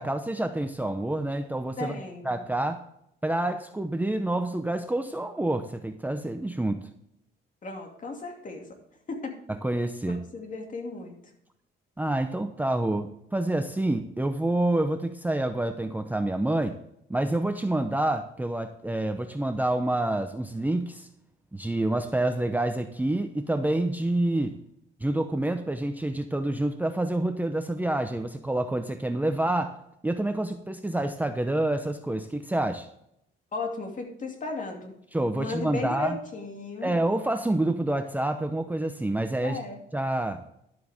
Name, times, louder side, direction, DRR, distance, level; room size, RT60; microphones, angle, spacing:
voice 1, 0.0-2.0 2.2-2.8 3.2-6.8 9.5-10.2 12.0-16.8 17.1-21.1 21.5-24.5 25.0-29.7 30.0-32.9 35.1-36.2 36.8-39.6 39.9-40.4, right 1 dB, 10° right, 7 dB, 0.7 m, -27 dB
voice 2, 1.8-2.3 7.6-8.7 9.1-9.3 10.3-11.2 33.5-34.9 35.3-36.9 39.4-39.8, left 3 dB, 40° left, 2 dB, 2.6 m, -35 dB
12.0 x 7.8 x 3.6 m, 0.78 s
cardioid pair, 90°, 20 cm